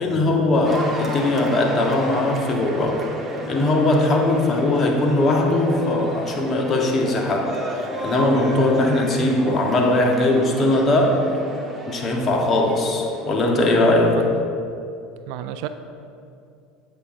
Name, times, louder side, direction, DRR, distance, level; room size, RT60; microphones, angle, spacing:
voice 1, 0.0-3.1 3.5-11.3 11.9-14.2, left 2 dB, 40° left, 2 dB, 0.9 m, -20 dB
Cheering / Applause, 0.6-14.0, right 1 dB, 25° right, 1.1 m, -34 dB
voice 2, 4.0-4.3 14.2-14.4 15.3-15.7, right 13 dB, 70° right, 10 dB, 0.3 m, -31 dB
8.1 x 5.6 x 2.6 m, 2.5 s
hypercardioid pair, 90°, 0 cm